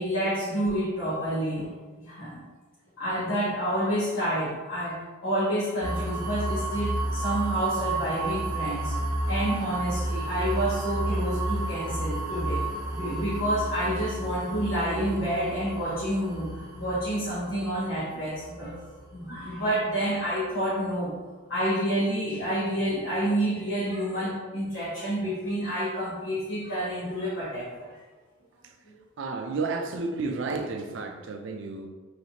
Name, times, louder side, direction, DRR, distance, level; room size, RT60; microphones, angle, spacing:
voice 1, 0.0-1.7 2.0-2.4 3.0-9.0 9.3-12.6 12.9-16.5 16.7-21.2 21.5-28.0 28.8-29.0, right 1 dB, 75° left, -13 dB, 1.3 m, -29 dB
sound 1, 5.8-19.6, right 1 dB, 20° right, 0.9 m, -32 dB
voice 2, 29.2-31.9, right 3 dB, 65° right, 5 dB, 0.4 m, -31 dB
3.2 x 2.9 x 2.8 m, 1.3 s
head